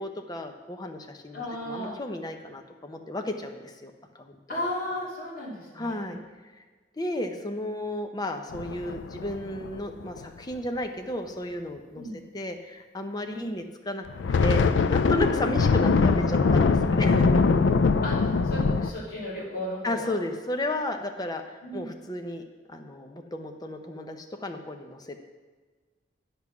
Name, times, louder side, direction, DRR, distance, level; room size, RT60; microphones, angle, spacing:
voice 1, 0.0-4.6 5.7-6.2 7.0-12.0 12.3-14.0 14.4-17.3 19.8-22.4 22.7-25.2, left 1 dB, 20° left, 5 dB, 0.7 m, -33 dB
voice 2, 1.3-2.0 4.5-6.2 11.9-12.2 13.3-13.5 15.4-15.6 18.0-20.1 21.6-21.9, left 1 dB, 50° left, -5 dB, 2.9 m, -35 dB
sound 1, 8.5-10.2 14.1-18.9, left 4 dB, 80° left, 0.4 m, -22 dB
9.1 x 5.7 x 6.1 m, 1.3 s
head